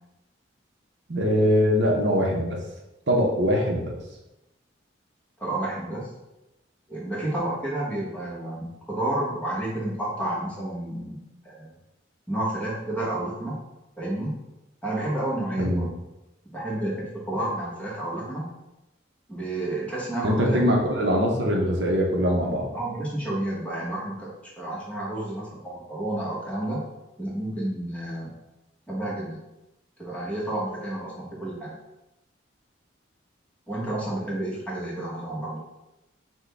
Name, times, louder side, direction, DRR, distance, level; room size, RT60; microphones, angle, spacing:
voice 1, 1.1-2.6 3.1-3.9 15.6-15.9 20.2-22.7, equal, 65° right, -1 dB, 0.7 m, -22 dB
voice 2, 5.4-6.1 6.9-11.2 11.4-11.7 12.3-13.5 14.0-14.3 14.8-15.8 16.5-18.5 19.3-20.7 22.7-26.8 27.2-28.3 28.9-29.4 30.0-31.7 33.7-35.6, right 1 dB, 5° left, -6 dB, 1.1 m, -30 dB
6.0 x 2.2 x 3.3 m, 0.95 s
head